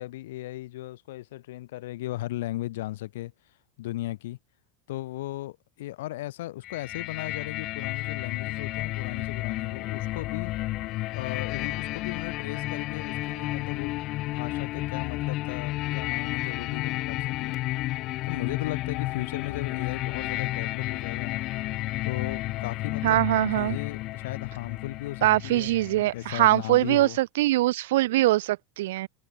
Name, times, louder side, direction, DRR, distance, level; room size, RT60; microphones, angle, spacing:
voice 1, 0.0-3.3 3.8-4.4 4.9-10.5 11.1-17.6 18.3-21.4 22.0-23.3 23.5-25.7 26.1-27.2, left 16 dB, 85° left, 6.7 m, -36 dB
sound 1, 6.6-26.4, left 18 dB, 35° left, 1.5 m, -32 dB
voice 2, 23.0-23.8 25.2-29.1, right 17 dB, 80° right, 3.1 m, -23 dB
supercardioid pair, 170°, 0 cm